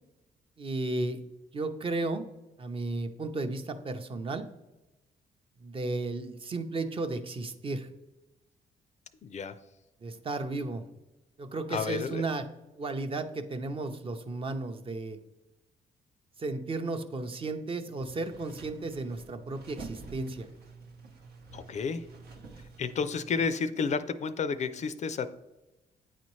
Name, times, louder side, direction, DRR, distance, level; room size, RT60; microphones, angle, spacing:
voice 1, 0.6-1.2 1.5-2.3 2.6-4.5 5.6-7.9 10.0-10.8 11.4-12.4 12.8-15.2 16.4-20.5, right 2 dB, 35° right, 7 dB, 0.6 m, -34 dB
voice 2, 9.2-9.6 11.7-12.2 21.5-22.0 22.8-25.3, left 5 dB, 45° left, 12 dB, 0.4 m, -31 dB
sound 1, 18.0-23.4, right 3 dB, 90° right, 0.9 m, -48 dB
8.8 x 4.2 x 3.1 m, 1.0 s
cardioid pair, 90°, 16 cm